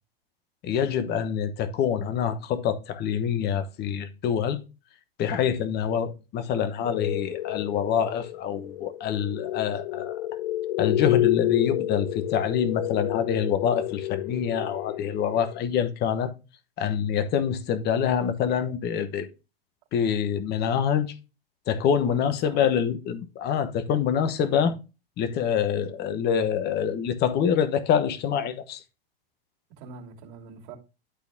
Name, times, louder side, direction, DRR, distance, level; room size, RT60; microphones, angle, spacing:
voice 1, 0.6-4.6 5.2-10.2 10.8-16.3 16.8-19.3 19.9-21.2 21.7-24.7 25.2-28.8, left 8 dB, 35° left, 1.2 m, -26 dB
sound 1, 6.8-15.6, left 15 dB, 65° left, 0.4 m, -29 dB
voice 2, 22.1-22.6 24.4-24.7 29.7-30.8, right 5 dB, 55° right, 2.7 m, -43 dB
11.5 x 4.1 x 3.6 m
hypercardioid pair, 115°, 29 cm